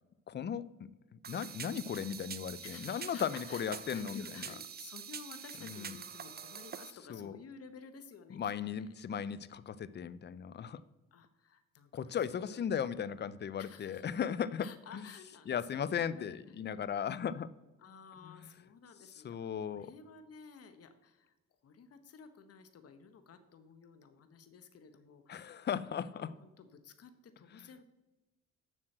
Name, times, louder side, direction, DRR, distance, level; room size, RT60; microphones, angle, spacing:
voice 1, 0.3-4.2 5.6-5.9 7.1-7.3 8.3-10.8 11.9-15.0 15.5-17.5 18.2-18.3 19.2-19.9 25.3-26.3, left 8 dB, 35° left, 0.5 m, -37 dB
sound 1, 1.2-6.9, right 7 dB, 35° right, 0.5 m, -46 dB
voice 2, 2.6-8.4 8.7-8.9 11.1-12.6 13.6-14.1 14.6-16.4 17.8-21.3 21.6-27.8, left 6 dB, 50° left, 1.1 m, -54 dB
7.5 x 6.2 x 7.8 m
cardioid pair, 90°, 30 cm